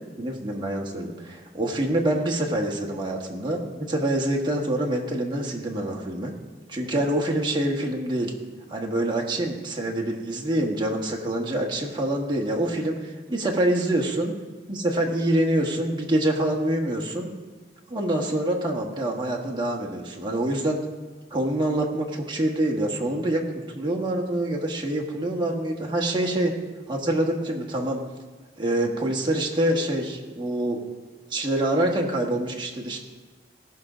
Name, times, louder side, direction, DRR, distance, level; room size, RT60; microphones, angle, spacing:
voice 1, 0.2-6.3 6.7-8.3 8.7-14.3 14.7-17.3 17.9-20.8 21.3-26.5 26.9-28.0 28.6-30.8 31.3-33.0, right 1 dB, 25° right, 0 dB, 1.4 m, -26 dB
17.0 x 6.1 x 5.0 m, 1.3 s
head